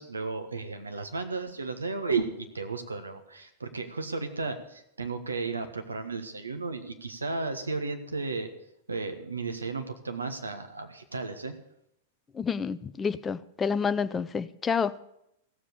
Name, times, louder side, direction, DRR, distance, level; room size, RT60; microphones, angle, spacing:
voice 1, 0.0-8.5 8.9-11.5, right 4 dB, 85° right, 7 dB, 1.4 m, -34 dB
voice 2, 12.3-15.0, left 6 dB, 20° left, 14 dB, 0.6 m, -29 dB
15.5 x 7.4 x 6.8 m, 0.80 s
figure-of-eight pair, 95°, 0 cm